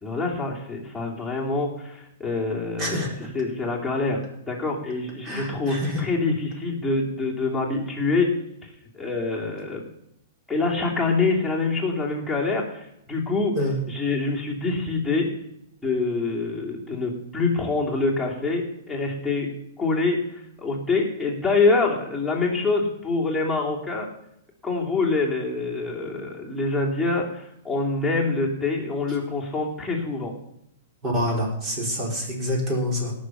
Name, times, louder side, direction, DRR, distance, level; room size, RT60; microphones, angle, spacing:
voice 1, 0.0-3.1 3.3-4.2 4.5-8.3 8.6-9.8 10.5-13.5 13.9-15.3 15.8-19.5 19.8-24.1 24.6-30.3, left 3 dB, 5° left, -4 dB, 3.0 m, -25 dB
voice 2, 2.8-3.1 5.2-6.0 13.5-13.8 31.0-33.1, left 1 dB, 30° right, -1 dB, 5.0 m, -26 dB
17.5 x 6.4 x 5.9 m, 0.79 s
hypercardioid pair, 145°, 0 cm